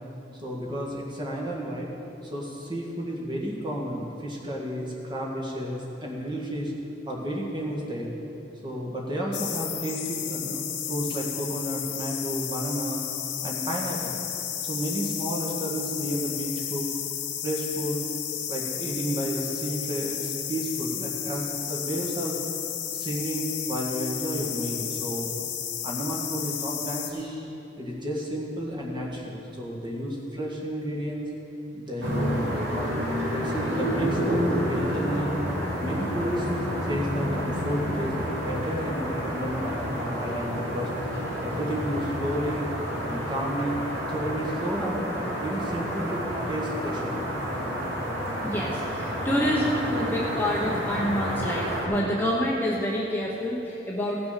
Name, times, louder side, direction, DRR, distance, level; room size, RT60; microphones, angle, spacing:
voice 1, 0.4-1.9 2.2-6.7 7.1-8.1 8.6-13.0 13.4-14.2 14.6-16.9 17.4-18.0 18.5-22.4 22.9-25.3 25.8-27.5 27.8-31.3 31.7-32.9 33.3-35.3 35.8-36.5 36.9-38.2 38.4-40.9 41.4-42.6 43.0-43.8 44.1-45.0 45.4-47.2, equal, 25° right, -3 dB, 1.8 m, -31 dB
sound 1, 9.3-27.1, left 10 dB, 80° left, 0.9 m, -33 dB
sound 2, 32.0-51.9, equal, 85° right, 2.4 m, -29 dB
voice 2, 48.4-54.2, equal, 10° left, -4 dB, 0.9 m, -27 dB
16.0 x 6.0 x 5.8 m, 2.8 s
head